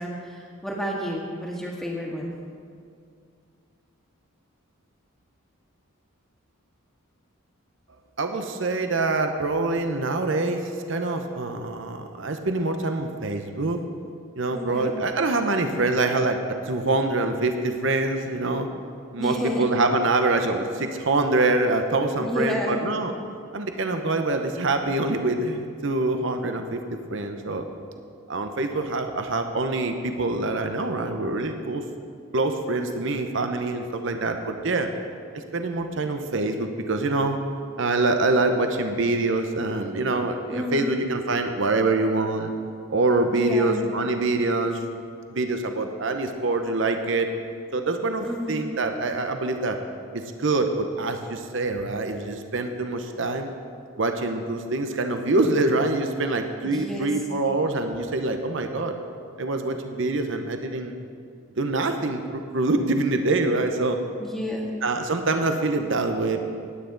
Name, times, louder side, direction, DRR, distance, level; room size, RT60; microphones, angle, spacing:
voice 1, 0.0-2.3 14.5-14.9 19.2-19.7 22.2-22.8 40.5-41.0 43.3-43.8 48.2-48.7 51.6-51.7 56.6-57.1 64.2-64.7, left 1 dB, ahead, -3 dB, 1.7 m, -30 dB
voice 2, 8.2-13.8 14.3-18.7 19.1-23.1 23.5-27.6 28.3-31.8 32.3-34.9 35.5-37.4 37.8-42.5 42.9-44.8 45.3-47.3 47.7-49.8 50.1-53.5 54.0-58.9 59.4-60.9 61.6-64.0 64.8-66.4, right 2 dB, 60° right, 6 dB, 0.8 m, -25 dB
18.5 x 9.3 x 3.9 m, 2.3 s
head